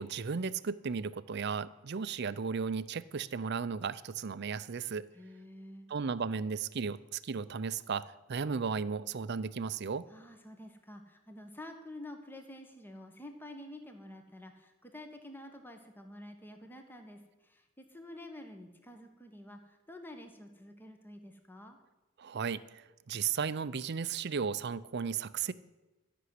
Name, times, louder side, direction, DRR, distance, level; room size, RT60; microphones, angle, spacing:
voice 1, 0.0-5.1 5.9-10.1 22.2-25.5, right 5 dB, 55° right, 15 dB, 0.5 m, -35 dB
voice 2, 5.1-5.9 10.1-21.8, left 1 dB, 10° left, 5 dB, 1.2 m, -49 dB
13.0 x 6.2 x 9.4 m, 1.1 s
head